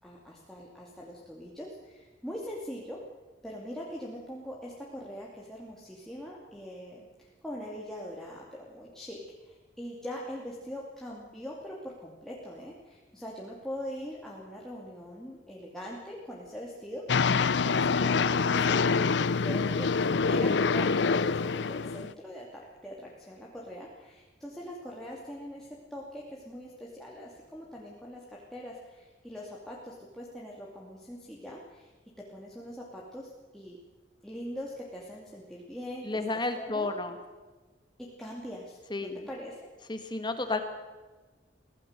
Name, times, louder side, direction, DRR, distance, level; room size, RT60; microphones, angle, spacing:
voice 1, 0.0-3.0 3.4-17.0 17.6-19.9 20.3-31.9 32.2-33.8 34.2-36.9 38.0-39.6, equal, 5° left, -4 dB, 2.6 m, -42 dB
sound 1, 17.1-22.1, left 5 dB, 85° left, 0.6 m, -26 dB
voice 2, 36.1-37.2 38.9-39.3 39.9-40.6, left 2 dB, 25° left, 7 dB, 1.7 m, -31 dB
24.0 x 16.5 x 6.7 m, 1.2 s
head